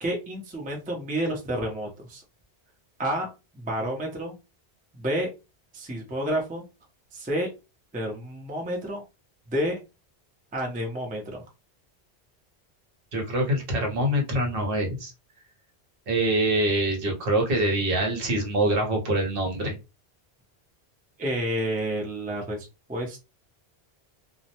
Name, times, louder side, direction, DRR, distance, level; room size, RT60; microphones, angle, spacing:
voice 1, 0.0-2.2 3.0-3.3 3.5-4.4 4.9-5.3 5.7-6.6 7.1-7.5 7.9-9.0 9.5-9.8 10.5-11.4 21.2-23.2, right 1 dB, 10° right, 0 dB, 0.4 m, -30 dB
voice 2, 13.1-15.1 16.1-19.8, right 1 dB, 65° right, 2 dB, 0.9 m, -25 dB
2.2 x 2.0 x 2.8 m, 0.27 s
omnidirectional pair, 1.1 m